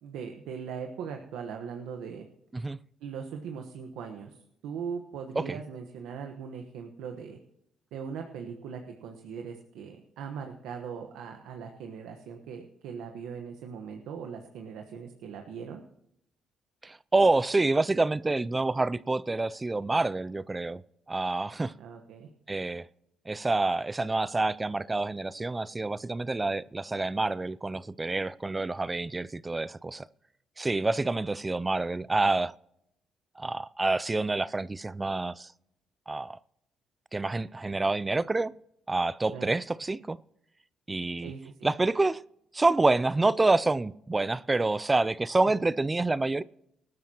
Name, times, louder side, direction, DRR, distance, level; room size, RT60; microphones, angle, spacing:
voice 1, 0.0-2.3 3.0-7.4 7.9-15.8 21.8-22.3 39.3-39.5 41.2-41.6, right 6 dB, 90° right, 1.2 m, -40 dB
voice 2, 16.8-20.8 21.1-21.7 22.5-22.9 23.3-30.1 30.6-32.5 33.4-35.5 36.1-36.4 37.1-38.5 38.9-40.2 40.9-41.3 41.6-42.2 42.5-46.4, right 2 dB, 20° right, 0.4 m, -27 dB
19.5 x 12.5 x 2.9 m
cardioid pair, 90°, 0 cm